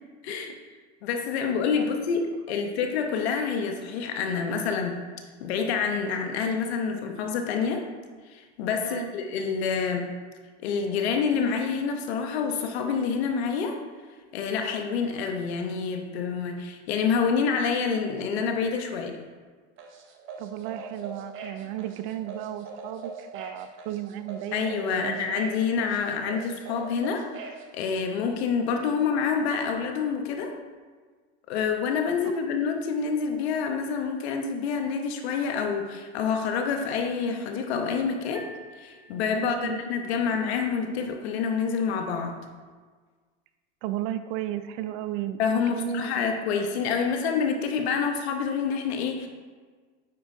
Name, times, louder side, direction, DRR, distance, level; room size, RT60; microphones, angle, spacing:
voice 1, 0.2-0.5 1.0-5.0 5.4-7.8 8.3-10.1 10.6-13.8 14.3-19.2 24.5-27.2 27.7-30.5 31.5-38.4 38.8-42.4 45.4-49.3, left 6 dB, 70° left, 4 dB, 1.0 m, -27 dB
voice 2, 8.8-9.1 20.4-25.2 39.3-39.8 43.8-45.4 45.7-46.3, right 12 dB, 55° right, 11 dB, 0.5 m, -34 dB
sound 1, 19.8-27.6, right 5 dB, 35° right, 1.0 m, -41 dB
sound 2, 38.3-39.8, equal, 5° right, 0.6 m, -48 dB
9.4 x 4.3 x 2.8 m, 1.5 s
hypercardioid pair, 115°, 34 cm